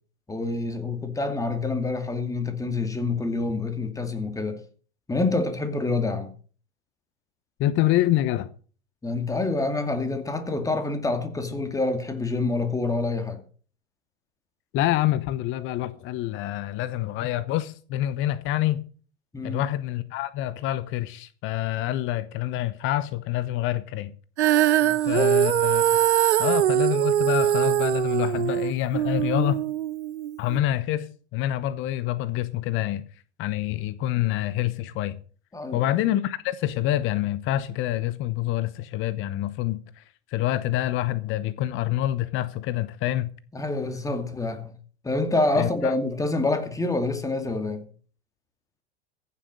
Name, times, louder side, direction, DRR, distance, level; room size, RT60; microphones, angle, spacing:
voice 1, 0.3-4.6 5.1-6.3 9.0-13.4 19.3-19.6 24.8-25.3 35.5-35.8 43.5-44.7 45.0-47.8, left 3 dB, 10° left, 2.4 m, -27 dB
voice 2, 7.6-8.5 14.7-18.8 19.4-24.1 25.1-25.8 26.4-29.6 30.4-33.0 33.4-35.2 35.7-40.0 40.3-43.3 45.6-45.9, left 13 dB, 35° left, 0.9 m, -26 dB
Female singing, 24.4-30.6, right 12 dB, 75° right, 0.7 m, -22 dB
15.5 x 7.4 x 6.4 m
hypercardioid pair, 95°, 34 cm